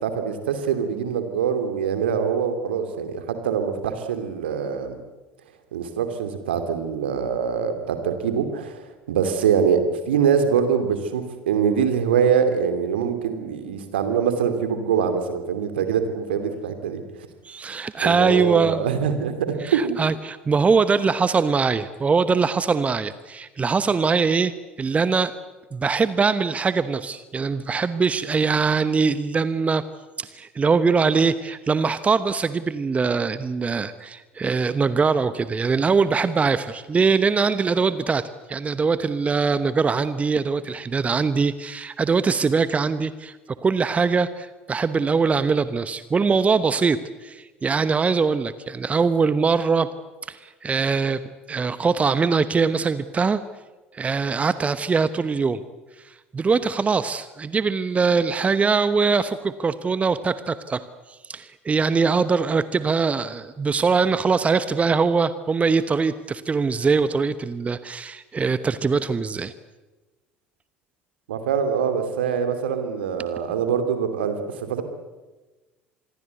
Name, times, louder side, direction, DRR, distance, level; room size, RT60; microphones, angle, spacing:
voice 1, 0.0-5.0 5.7-17.3 18.0-20.1 71.3-74.8, right 7 dB, 70° right, 7 dB, 2.8 m, -24 dB
voice 2, 17.4-18.8 19.6-24.5 24.8-25.3 25.7-29.8 30.2-43.4 43.6-49.9 50.3-51.2 51.5-53.4 53.9-55.6 56.0-60.8 61.1-69.5, right 5 dB, 20° right, 14 dB, 1.0 m, -22 dB
26.5 x 21.5 x 8.2 m, 1.2 s
figure-of-eight pair, 65°, 6 cm